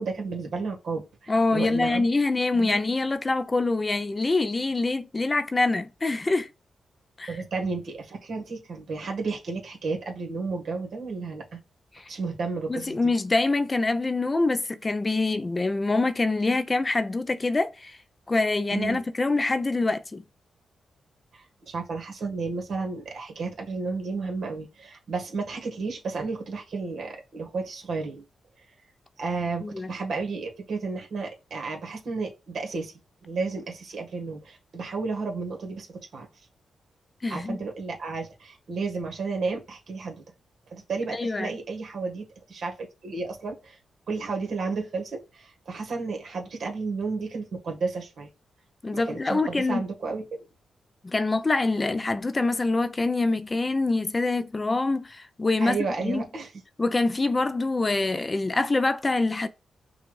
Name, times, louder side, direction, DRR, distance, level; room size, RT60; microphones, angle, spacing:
voice 1, 0.0-2.1 2.5-2.8 7.3-11.6 12.1-13.1 18.7-19.0 21.3-28.2 29.2-32.9 33.2-36.3 37.3-40.2 40.7-43.8 44.1-48.3 48.9-50.2 55.6-56.5, right 4 dB, 65° right, 1.5 m, -32 dB
voice 2, 1.3-6.5 7.2-7.4 11.9-12.1 12.7-18.0 18.3-20.2 29.6-29.9 37.2-37.6 41.1-41.5 48.8-49.8 51.0-56.2 56.8-59.5, left 3 dB, 25° left, 0.4 m, -25 dB
5.8 x 2.3 x 3.2 m
cardioid pair, 100°, 0 cm